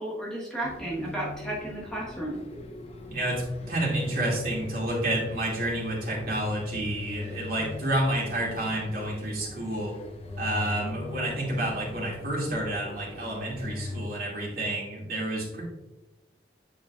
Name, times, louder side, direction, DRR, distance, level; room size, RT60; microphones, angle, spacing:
voice 1, 0.0-2.4, right 1 dB, 5° left, -6 dB, 1.4 m, -33 dB
sound 1, 0.6-14.0, left 2 dB, 35° left, 0.8 m, -40 dB
voice 2, 3.1-9.9 10.4-15.6, right 1 dB, 55° right, -4 dB, 2.3 m, -29 dB
8.8 x 4.9 x 2.4 m, 1.0 s
head